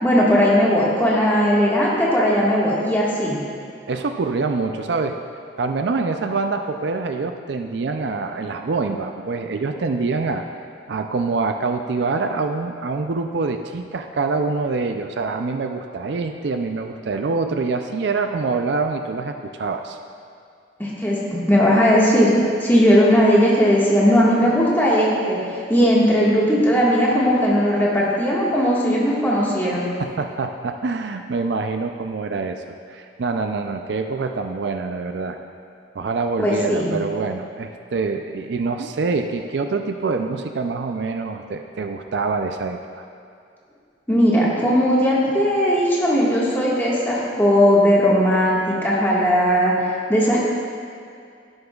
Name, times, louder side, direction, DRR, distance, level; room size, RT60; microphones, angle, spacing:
voice 1, 0.0-3.4 20.8-22.3 22.6-29.9 36.4-36.9 44.1-49.8 50.1-50.4, equal, 10° left, -6 dB, 1.6 m, -18 dB
voice 2, 3.9-5.2 5.6-10.4 10.9-20.0 30.0-35.4 35.9-43.1, right 4 dB, 60° right, 6 dB, 0.4 m, -25 dB
11.5 x 10.5 x 2.4 m, 2.3 s
head